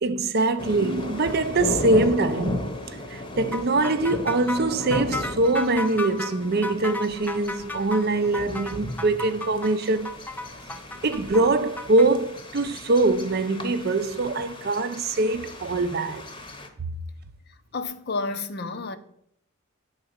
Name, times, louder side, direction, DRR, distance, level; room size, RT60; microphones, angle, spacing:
voice 1, 0.0-2.7 3.1-10.1 11.0-16.2, right 2 dB, 50° right, 0.6 m, -23 dB
sound 1, 0.6-16.7, left 1 dB, 25° left, 0.9 m, -36 dB
sound 2, 3.5-12.1, left 2 dB, 10° left, 0.4 m, -34 dB
voice 2, 17.7-19.0, left 3 dB, 50° left, 0.7 m, -30 dB
9.6 x 4.0 x 6.5 m
head